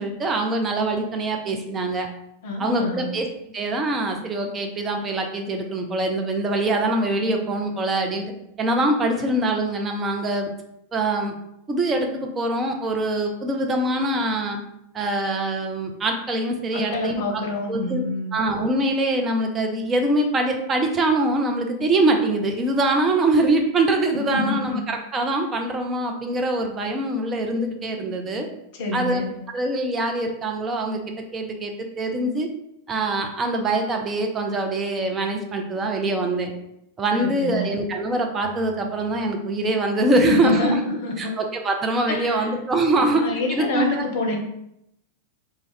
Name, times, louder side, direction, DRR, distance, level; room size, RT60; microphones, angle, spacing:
voice 1, 0.0-2.1 2.6-3.3 3.5-8.3 8.6-10.5 10.9-11.3 11.7-14.6 14.9-17.4 17.7-18.0 18.3-28.5 28.9-29.2 29.5-32.5 32.9-36.5 37.0-40.8 41.2-44.0, right 2 dB, 20° right, 3 dB, 0.5 m, -23 dB
voice 2, 2.4-3.1 16.7-18.4 24.3-24.8 28.7-29.3 37.1-37.7 40.1-41.4 42.1-42.5 42.9-44.4, left 2 dB, 50° left, 1 dB, 0.7 m, -27 dB
2.4 x 2.1 x 3.9 m, 0.80 s
figure-of-eight pair, 90°, 0 cm